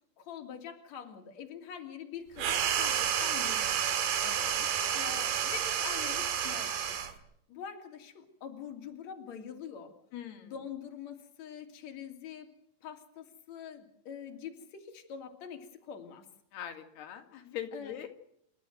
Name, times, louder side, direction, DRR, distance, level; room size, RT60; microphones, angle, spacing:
voice 1, 0.2-3.9 4.9-7.0 7.5-9.9 10.4-12.5 12.8-16.3 17.7-17.9, left 8 dB, 45° left, 4 dB, 3.7 m, -44 dB
sound 1, 2.4-7.2, right 9 dB, 65° right, 3.4 m, -30 dB
voice 2, 4.2-4.7 10.1-10.5 16.5-18.1, left 9 dB, 85° left, 5 dB, 4.2 m, -42 dB
28.5 x 13.5 x 7.8 m, 0.74 s
omnidirectional pair, 4.5 m